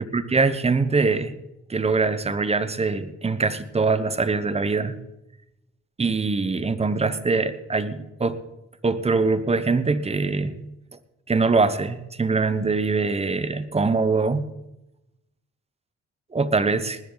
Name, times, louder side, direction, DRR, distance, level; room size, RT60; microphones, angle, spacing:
voice 1, 0.1-1.3 1.7-5.0 6.0-8.4 8.8-10.6 11.3-14.5 16.3-17.0, right 4 dB, 20° right, 12 dB, 1.0 m, -23 dB
19.0 x 10.5 x 4.0 m, 0.92 s
cardioid pair, 90°, 30 cm